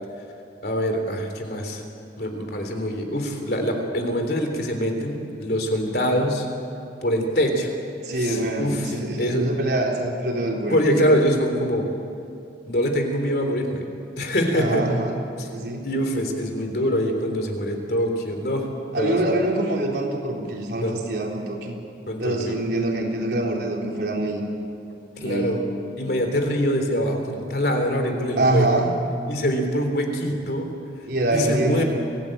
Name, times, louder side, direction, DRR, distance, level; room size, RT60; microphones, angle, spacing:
voice 1, 0.6-1.8 2.2-6.4 7.0-7.7 8.1-9.4 10.7-11.8 12.7-13.8 14.2-14.8 15.8-18.7 18.9-19.2 20.7-20.9 22.1-22.6 25.2-25.6 26.0-28.7 29.3-30.7 31.3-31.8, equal, 60° left, 4 dB, 3.5 m, -24 dB
voice 2, 8.0-10.8 14.5-15.1 15.5-15.9 18.9-21.8 22.2-24.4 25.2-25.6 28.4-28.9 31.1-31.8, right 1 dB, 65° right, -1 dB, 4.0 m, -25 dB
25.0 x 17.0 x 9.0 m, 2.6 s
head